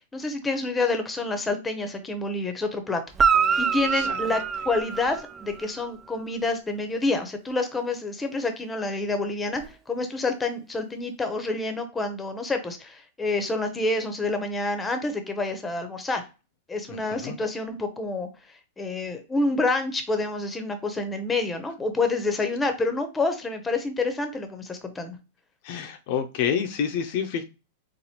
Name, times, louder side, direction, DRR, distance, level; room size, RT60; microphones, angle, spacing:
voice 1, 0.1-3.0 3.6-16.2 16.7-18.3 18.8-25.2, left 3 dB, 15° left, 0.7 m, -28 dB
Guitar, 3.1-5.7 9.6-9.7, right 6 dB, 20° right, 0.3 m, -25 dB
voice 2, 16.9-17.4 25.6-27.4, left 7 dB, 55° left, 0.5 m, -28 dB
4.1 x 2.6 x 2.9 m
hypercardioid pair, 125°, 0 cm